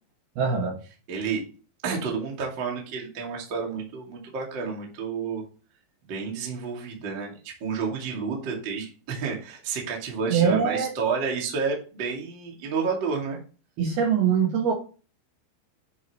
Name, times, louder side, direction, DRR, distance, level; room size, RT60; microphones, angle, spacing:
voice 1, 0.4-0.8 10.3-10.9 13.8-14.7, right 6 dB, 65° right, 0 dB, 2.8 m, -22 dB
voice 2, 1.1-1.4 1.8-5.4 6.1-13.4, right 5 dB, 35° right, -1 dB, 1.8 m, -30 dB
11.0 x 7.5 x 3.2 m, 0.37 s
omnidirectional pair, 5.8 m